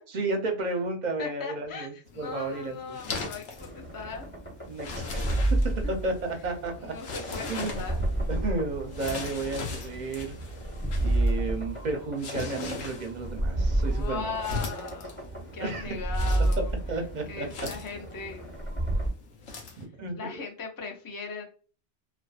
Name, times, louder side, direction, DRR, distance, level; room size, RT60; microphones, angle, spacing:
voice 1, 0.1-3.0 4.7-5.3 5.6-6.9 7.5-7.8 8.3-10.3 11.0-14.4 15.6-16.0 16.6-17.5 19.8-20.5, right 3 dB, 50° right, 4 dB, 0.6 m, -32 dB
voice 2, 1.2-4.3 6.8-8.0 10.8-10.9 13.9-16.7 17.3-18.5 20.2-21.4, left 5 dB, 30° left, 3 dB, 0.3 m, -38 dB
sound 1, 2.1-19.8, left 4 dB, 85° left, 1.0 m, -41 dB
sound 2, 3.6-19.1, right 1 dB, 10° left, 0.9 m, -31 dB
2.5 x 2.3 x 2.3 m, 0.37 s
omnidirectional pair, 1.2 m